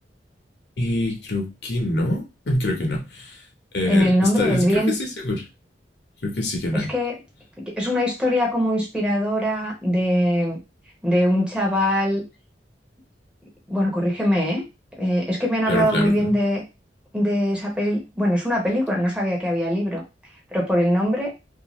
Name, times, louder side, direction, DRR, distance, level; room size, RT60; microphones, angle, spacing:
voice 1, 0.8-3.4 3.7-4.1 4.4-5.4 6.2-6.9 15.7-16.3, left 1 dB, 65° left, 1 dB, 0.8 m, -25 dB
voice 2, 3.9-4.9 6.7-7.1 7.6-10.6 11.0-12.2 13.7-14.6 15.0-16.6 17.1-20.0 20.5-21.3, equal, 5° right, -1 dB, 0.7 m, -22 dB
2.6 x 2.3 x 3.0 m, 0.27 s
head